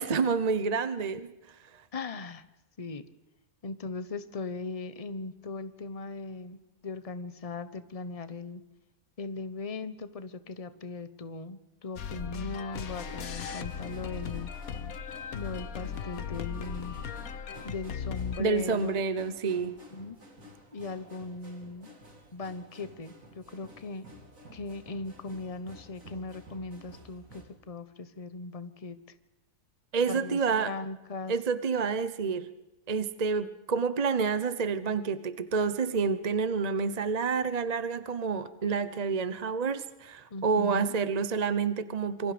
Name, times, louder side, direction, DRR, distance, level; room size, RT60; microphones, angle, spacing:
voice 1, 0.0-1.3 18.4-19.7 29.9-30.7 31.3-32.5 32.9-42.3, right 5 dB, 35° right, 13 dB, 0.8 m, -28 dB
voice 2, 1.9-2.4 2.8-3.0 3.6-6.6 6.8-8.6 9.2-14.5 15.3-17.0 17.6-19.0 19.6-20.2 20.7-21.9 22.3-24.0 24.5-27.2 27.7-29.0 30.1-31.3 40.3-40.9, left 3 dB, 25° left, 12 dB, 1.1 m, -39 dB
sound 1, 12.0-18.4, left 7 dB, 65° left, 1.5 m, -37 dB
sound 2, 12.7-27.4, equal, 60° right, 3.9 m, -51 dB
27.0 x 25.0 x 5.1 m, 0.96 s
omnidirectional pair, 1.6 m